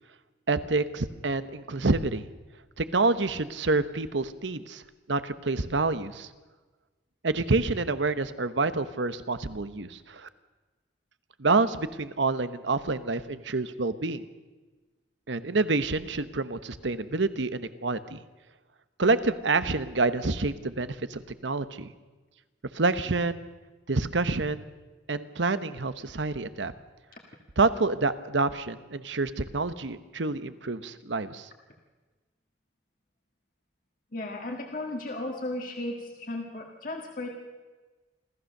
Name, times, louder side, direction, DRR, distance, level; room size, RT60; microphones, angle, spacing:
voice 1, 0.5-2.3 2.8-4.8 5.1-6.3 7.2-10.3 11.4-14.2 15.3-18.2 19.0-21.9 22.7-23.5 23.9-24.7 25.1-26.7 27.6-31.5, right 3 dB, 80° right, 12 dB, 1.0 m, -27 dB
voice 2, 34.1-37.3, left 2 dB, 45° left, 1 dB, 1.8 m, -35 dB
26.5 x 14.5 x 6.6 m, 1.3 s
head